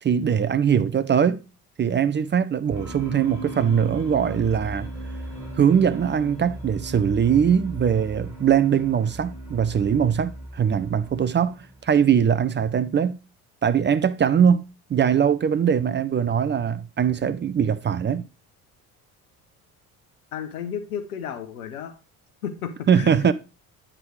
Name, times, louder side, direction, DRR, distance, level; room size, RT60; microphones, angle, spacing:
voice 1, 0.0-1.4 1.8-4.9 5.6-13.2 13.6-14.6 14.9-18.2 22.9-23.3, right 8 dB, 25° right, 0.5 m, -21 dB
sound 1, 2.7-12.3, right 1 dB, 5° right, 3.6 m, -37 dB
voice 2, 20.3-21.9 22.4-23.3, left 8 dB, 85° left, 1.1 m, -33 dB
9.5 x 3.7 x 4.7 m
hypercardioid pair, 60°, 43 cm